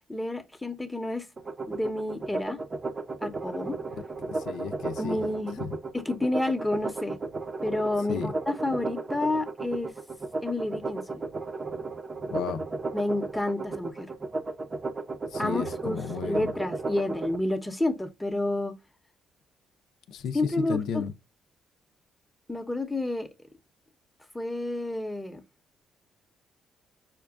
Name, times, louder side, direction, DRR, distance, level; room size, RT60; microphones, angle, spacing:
voice 1, 0.1-1.3 1.7-2.6 3.2-3.8 5.0-5.6 5.9-7.2 7.6-9.9 10.4-11.2 12.9-14.1 15.4-18.7 20.3-21.1 22.5-23.3 24.3-25.4, left 2 dB, 10° left, 0.7 m, -30 dB
sound 1, 1.4-17.4, right 3 dB, 30° right, 0.6 m, -34 dB
voice 2, 4.2-5.2 8.1-8.3 12.3-12.6 15.3-16.5 20.1-21.1, left 6 dB, 80° left, 0.4 m, -33 dB
5.8 x 2.2 x 2.3 m
cardioid pair, 90°, 0 cm